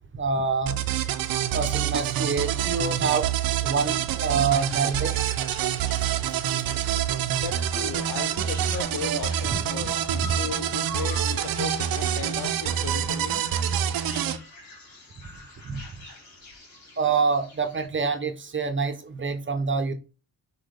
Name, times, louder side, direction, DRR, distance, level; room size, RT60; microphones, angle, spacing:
voice 1, 0.1-0.8 1.5-3.3 3.6-5.1 9.5-9.6 15.7-15.8 17.0-19.9, right 5 dB, 35° right, 0.6 m, -26 dB
sound 1, 0.7-14.4, right 10 dB, 75° right, 0.5 m, -26 dB
sound 2, 4.5-17.9, left 2 dB, 50° left, 2.0 m, -46 dB
voice 2, 7.4-13.4, left 7 dB, 70° left, 0.6 m, -36 dB
6.1 x 2.2 x 3.5 m
cardioid pair, 75°, 35 cm